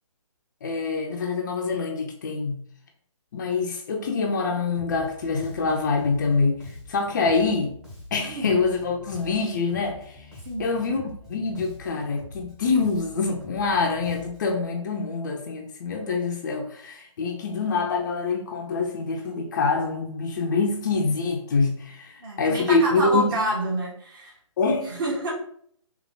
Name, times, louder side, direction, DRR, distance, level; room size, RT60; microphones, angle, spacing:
voice 1, 0.6-2.6 3.3-6.6 6.9-7.7 8.1-10.3 10.6-11.0 11.3-23.4 24.6-24.8, left 4 dB, 35° left, 1 dB, 0.6 m, -25 dB
Bass guitar, 4.7-14.6, left 2 dB, 5° right, 0.8 m, -44 dB
voice 2, 8.3-8.6 10.4-10.7 22.2-24.3 24.8-25.3, equal, 40° right, -3 dB, 1.6 m, -28 dB
3.6 x 3.1 x 3.7 m, 0.64 s
figure-of-eight pair, 145°, 17 cm